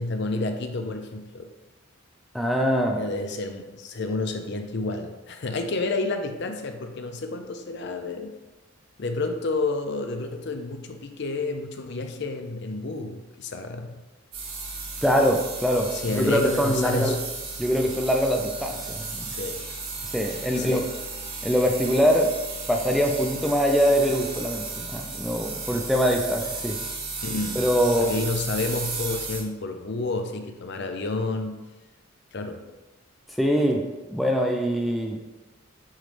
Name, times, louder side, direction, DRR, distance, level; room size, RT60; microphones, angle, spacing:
voice 1, 0.0-1.5 2.9-8.3 9.0-14.0 15.9-17.2 19.3-19.6 20.6-20.9 27.2-27.7 28.0-31.6 32.3-32.6, left 3 dB, 55° left, 6 dB, 0.5 m, -30 dB
voice 2, 2.3-3.0 15.0-17.1 17.6-19.3 20.0-20.8 21.4-22.3 22.7-26.8 27.6-28.1 33.4-33.9 34.1-35.2, equal, ahead, 1 dB, 0.4 m, -23 dB
sound 1, 14.3-29.4, right 4 dB, 85° right, 1.5 m, -34 dB
8.9 x 3.2 x 3.3 m, 1.1 s
head